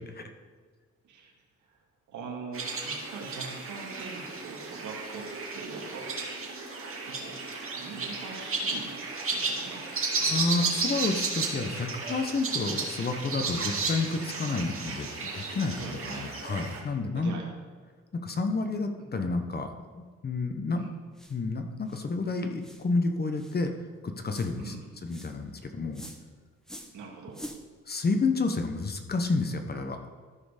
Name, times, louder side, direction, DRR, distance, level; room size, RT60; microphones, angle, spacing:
voice 1, 2.1-6.1 7.0-7.4 7.7-9.0 9.3-9.9 15.8-16.3 17.2-17.5 19.0-19.1 20.8-21.0 24.6-24.8 26.9-27.4, right 4 dB, 80° right, 0 dB, 2.1 m, -42 dB
sound 1, 2.5-16.8, right 4 dB, 45° right, 2.2 m, -33 dB
voice 2, 10.2-17.3 18.1-20.8 21.3-23.7 24.0-24.7 25.0-26.0 27.9-30.0, left 3 dB, 30° left, 6 dB, 1.0 m, -30 dB
sound 2, 21.1-21.4 21.9-22.1 22.6-22.9 23.4-23.6 24.3-24.5 25.1-25.3 25.9-26.2 26.6-27.0 27.3-27.6, equal, ahead, 1.0 m, -45 dB
13.5 x 5.2 x 5.0 m, 1.5 s
cardioid pair, 90°, 30 cm